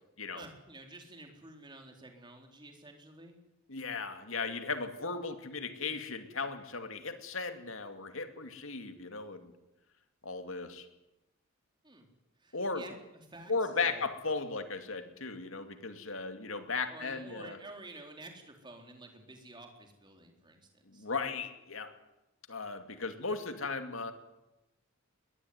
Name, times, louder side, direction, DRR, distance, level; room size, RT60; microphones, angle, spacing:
voice 1, 0.3-3.4 11.8-12.1 12.4-14.0 16.9-21.1, right 2 dB, 20° right, 3 dB, 4.0 m, -51 dB
voice 2, 3.7-9.5 10.2-10.9 12.5-12.8 13.5-17.6 20.9-21.9 22.5-24.1, left 4 dB, 75° left, 7 dB, 2.5 m, -36 dB
22.0 x 20.0 x 9.6 m, 0.97 s
head